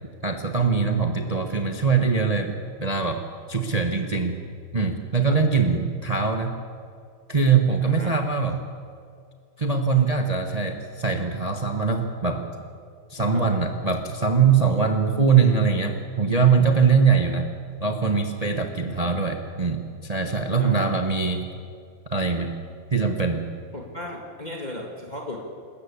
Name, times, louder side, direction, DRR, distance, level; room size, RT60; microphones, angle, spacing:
voice 1, 0.2-3.2 3.5-4.4 4.7-6.5 7.3-8.6 9.6-12.4 13.1-17.5 17.8-21.4 22.1-22.5 22.9-23.5, right 5 dB, 25° right, 5 dB, 1.1 m, -22 dB
voice 2, 7.8-8.2 13.2-13.4 17.0-17.1 19.0-19.2 20.6-20.9 23.7-25.4, left 1 dB, 25° left, 0 dB, 2.3 m, -36 dB
26.5 x 14.5 x 8.5 m, 2.2 s
omnidirectional pair, 2.0 m